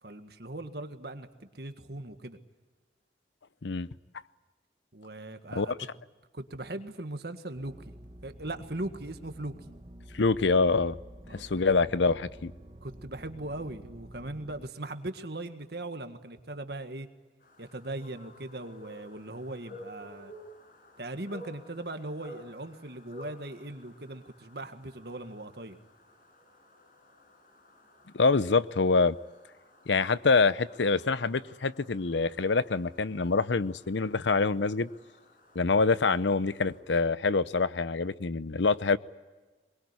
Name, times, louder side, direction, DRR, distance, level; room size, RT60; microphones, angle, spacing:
voice 1, 0.0-2.4 4.9-5.9 6.3-7.9 8.2-9.5 11.3-11.5 12.8-17.1 17.6-20.3 21.0-25.8, right 2 dB, 60° right, 1.8 m, -39 dB
sound 1, 7.5-14.7, right 1 dB, 35° right, 1.3 m, -49 dB
voice 2, 10.1-11.0 11.3-12.5 28.1-29.2 29.9-34.9 35.5-39.0, left 4 dB, 80° left, 0.7 m, -25 dB
sound 2, 17.4-36.8, left 1 dB, 50° left, 5.7 m, -54 dB
22.5 x 22.0 x 9.7 m
head